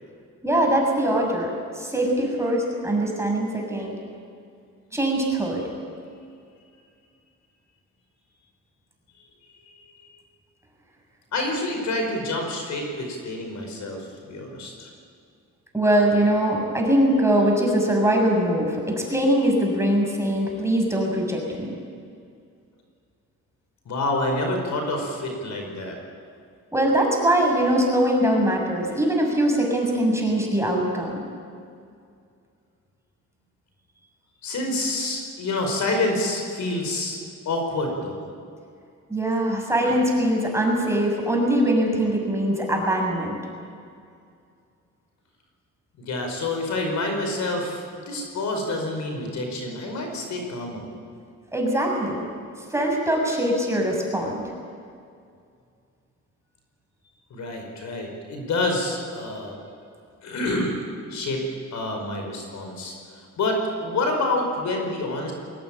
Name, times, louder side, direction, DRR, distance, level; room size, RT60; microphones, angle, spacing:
voice 1, 0.4-4.0 4.9-5.6 15.7-21.7 26.7-31.2 39.1-43.4 51.5-52.2 52.7-54.4, right 1 dB, 10° right, 0 dB, 6.6 m, -22 dB
voice 2, 11.3-14.9 23.9-26.0 34.4-37.2 37.5-38.2 39.8-40.0 46.0-50.9 57.3-59.6 60.2-60.8 61.1-61.4 61.7-63.0 63.4-65.3, left 2 dB, 70° left, 3 dB, 5.1 m, -27 dB
21.5 x 18.0 x 8.9 m, 2.3 s
cardioid pair, 90°, 30 cm